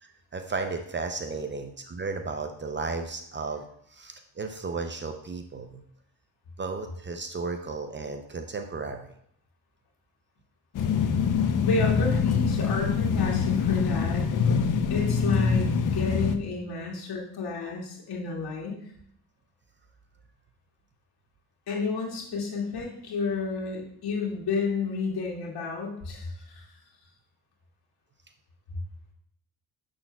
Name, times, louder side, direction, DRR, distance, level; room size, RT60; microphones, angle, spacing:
voice 1, 0.0-5.8 6.6-9.1, right 4 dB, 30° right, 6 dB, 0.5 m, -34 dB
sound 1, 10.7-16.4, left 6 dB, 50° left, 0.6 m, -24 dB
voice 2, 11.6-14.2 14.9-18.9 21.7-26.7, left 4 dB, 65° left, -3 dB, 2.2 m, -31 dB
7.0 x 6.3 x 2.3 m, 0.70 s
cardioid pair, 95°, 41 cm